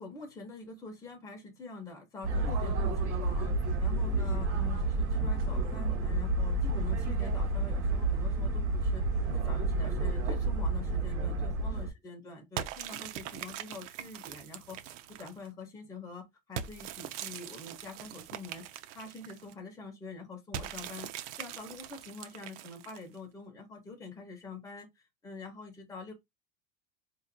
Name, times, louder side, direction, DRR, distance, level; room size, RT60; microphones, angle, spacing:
voice 1, 0.0-3.5 3.8-18.7 18.9-21.1 21.4-24.9 25.2-26.1, left 3 dB, 10° left, 1.0 m, -45 dB
sound 1, 2.2-11.9, right 2 dB, 40° right, 1.9 m, -30 dB
sound 2, 12.6-15.5 16.6-19.5 20.5-23.2, right 10 dB, 65° right, 0.6 m, -42 dB
4.6 x 2.9 x 2.2 m
cardioid pair, 170°, 40 cm